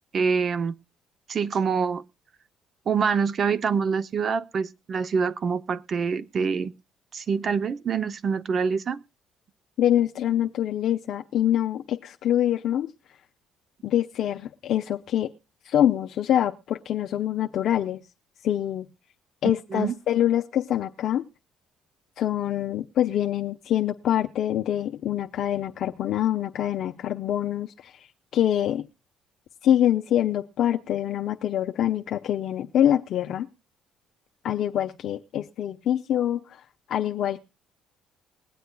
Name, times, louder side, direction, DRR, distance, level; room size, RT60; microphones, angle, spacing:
voice 1, 0.1-0.8 1.3-2.0 2.9-6.7 7.1-9.0 19.7-19.9, right 5 dB, 45° right, 0.6 m, -25 dB
voice 2, 9.8-12.9 13.8-15.3 15.6-18.0 18.4-18.9 19.4-21.2 22.2-28.1 28.3-28.8 29.6-33.5 34.4-36.6 36.9-37.4, left 11 dB, 65° left, 0.5 m, -25 dB
21.0 x 8.0 x 2.2 m
cardioid pair, 90°, 0 cm